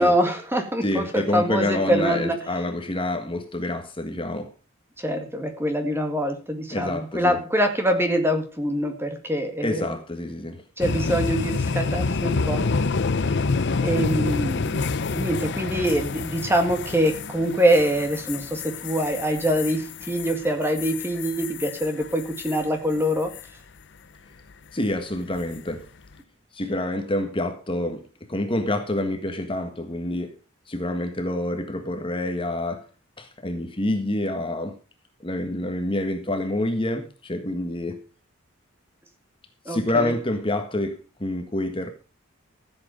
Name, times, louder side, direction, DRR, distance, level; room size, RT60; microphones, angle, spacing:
voice 1, 0.0-2.4 5.0-9.9 10.8-12.6 13.8-23.3 39.7-40.1, equal, 10° right, 1.9 m, -24 dB
voice 2, 0.8-4.5 6.7-7.4 9.6-10.6 14.9-15.0 24.7-25.9 26.5-30.3 30.7-32.9 33.2-34.7 35.2-38.0 39.7-41.9, left 1 dB, 25° left, 1.5 m, -27 dB
sound 1, 10.8-22.7 23.0-23.4 25.4-25.7, left 4 dB, 55° left, 0.7 m, -28 dB
15.0 x 8.0 x 5.1 m
head